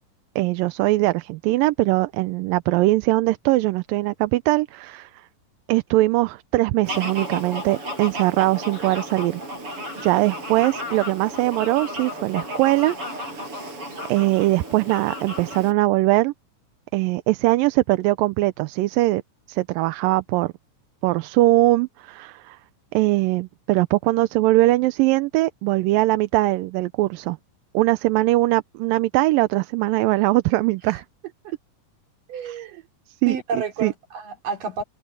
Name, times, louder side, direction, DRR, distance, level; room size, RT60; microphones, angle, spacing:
voice 1, 0.4-5.1 5.7-9.4 10.0-13.0 13.3-13.4 14.1-16.3 16.9-19.2 19.5-20.5 21.0-22.6 22.9-27.4 27.7-31.0 32.5-32.6 33.2-33.9, right 19 dB, 90° right, 2.4 m, -21 dB
Fowl, 6.9-15.7, equal, 40° right, 7.2 m, -33 dB
voice 2, 32.3-32.8 33.3-34.8, right 5 dB, 75° right, 5.1 m, -30 dB
omnidirectional pair, 3.9 m